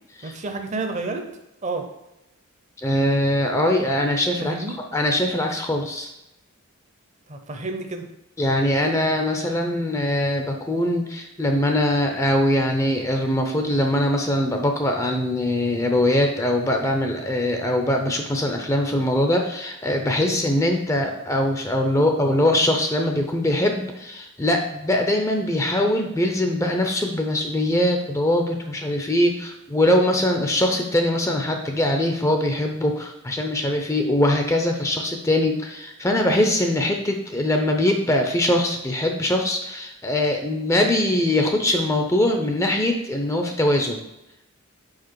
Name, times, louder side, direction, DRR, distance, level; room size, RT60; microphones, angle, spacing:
voice 1, 0.2-1.3 1.6-1.9 4.4-4.8 7.3-8.1 20.2-20.4, right 3 dB, 30° right, 5 dB, 0.6 m, -30 dB
voice 2, 2.8-4.6 4.9-6.1 8.4-44.0, left 1 dB, 15° left, 3 dB, 0.5 m, -22 dB
5.1 x 4.9 x 4.6 m, 0.91 s
head